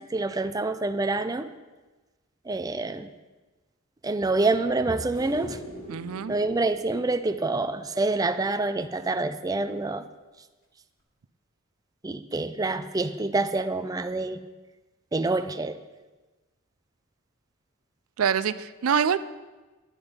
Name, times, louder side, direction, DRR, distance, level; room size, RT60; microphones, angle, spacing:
voice 1, 0.1-1.5 2.5-3.1 4.0-5.6 6.3-10.0 12.0-14.4 15.1-15.8, right 2 dB, 15° right, 10 dB, 0.4 m, -27 dB
sound 1, 5.1-8.4 11.0-11.1, equal, 45° left, 2.2 m, -44 dB
voice 2, 5.9-6.3 18.2-19.2, right 7 dB, 90° right, 14 dB, 0.4 m, -25 dB
10.0 x 9.7 x 5.1 m, 1.2 s
head